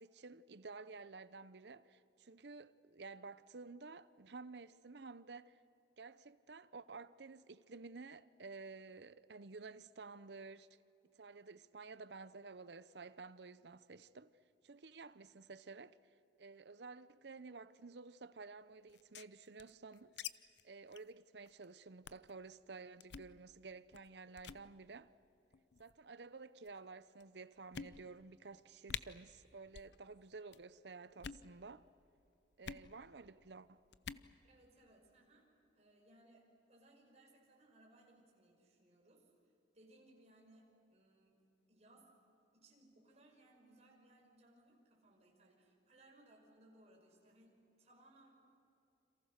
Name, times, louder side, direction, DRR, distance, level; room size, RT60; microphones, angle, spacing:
voice 1, 0.0-5.6 6.0-10.7 11.2-14.3 14.6-16.0 16.4-20.2 20.6-25.1 25.8-31.9 32.6-33.8, right 4 dB, 65° right, 0.7 m, -52 dB
sound 1, 18.9-20.3 20.6-20.7 20.9-21.1 21.5-21.6 22.0-22.3 23.0-23.3 23.9-24.1 24.4-24.6 25.5-25.9 26.7-26.8 27.2-27.3 27.7-28.3 28.6-28.7 28.9-29.0 29.7-30.0 30.2-30.6 31.1-31.5 32.6-32.9 33.9-34.3, left 8 dB, 70° left, 0.6 m, -47 dB
voice 2, 34.4-35.5 35.7-39.3 39.7-41.4 41.7-42.1 42.5-48.3, right 1 dB, 35° right, 5.3 m, -66 dB
29.0 x 27.5 x 6.6 m
head